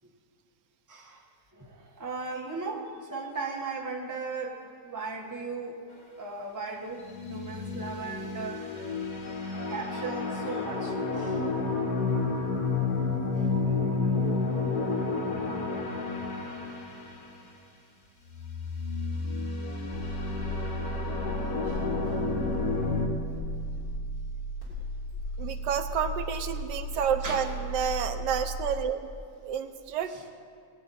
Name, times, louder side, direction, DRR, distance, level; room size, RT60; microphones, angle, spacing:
voice 1, 0.9-1.2 1.5-5.8 6.2-8.9 9.5-11.5 13.3-13.8 21.6-21.9 22.1-22.2 23.7-23.9 27.2-27.5 30.1-30.2, right 4 dB, 10° right, -1 dB, 1.2 m, -37 dB
sound 1, 7.0-17.3 18.3-23.1, left 3 dB, 60° left, 1.6 m, -31 dB
sound 2, 19.9-28.8, equal, 85° left, 4.4 m, -35 dB
voice 2, 25.4-29.0 29.4-30.3, right 8 dB, 75° right, 8 dB, 1.4 m, -30 dB
21.0 x 8.8 x 4.2 m, 2.2 s
omnidirectional pair, 1.9 m